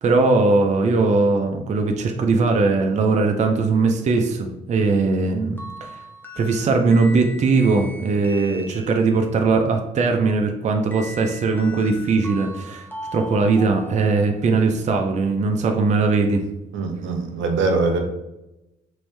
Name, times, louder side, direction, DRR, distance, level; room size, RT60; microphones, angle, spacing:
voice 1, 0.0-6.0 6.4-16.4, right 3 dB, 35° right, 4 dB, 0.4 m, -20 dB
sound 1, 5.6-9.3 10.9-14.7, equal, 10° left, 0.6 m, -39 dB
voice 2, 16.7-18.0, right 3 dB, 75° right, 4 dB, 0.6 m, -22 dB
3.1 x 2.6 x 3.2 m, 0.92 s
cardioid pair, 90°, 20 cm